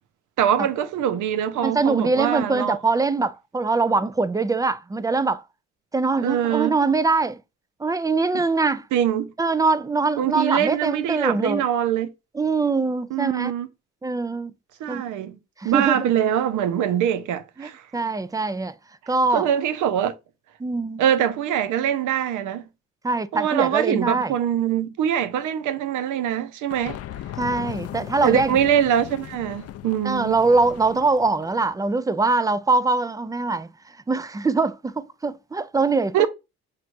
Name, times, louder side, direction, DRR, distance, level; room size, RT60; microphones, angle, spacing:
voice 1, 0.4-2.8 6.2-6.7 8.9-9.3 10.2-12.1 13.1-13.7 14.8-15.4 15.6-17.8 19.3-20.1 21.0-22.6 23.3-27.0 28.2-30.4 36.1-36.3, right 10 dB, 80° right, 0.6 m, -23 dB
voice 2, 1.6-5.4 5.9-7.4 7.8-8.8 9.4-11.6 12.3-13.5 14.0-14.5 14.9-15.0 15.6-16.1 17.6-18.7 19.1-19.5 20.6-21.0 23.0-24.3 27.4-28.6 30.0-33.7 34.1-36.3, right 3 dB, 10° right, 0.3 m, -23 dB
sound 1, 26.7-31.7, left 12 dB, 55° left, 0.4 m, -37 dB
5.9 x 3.2 x 2.5 m
cardioid pair, 90°, 30 cm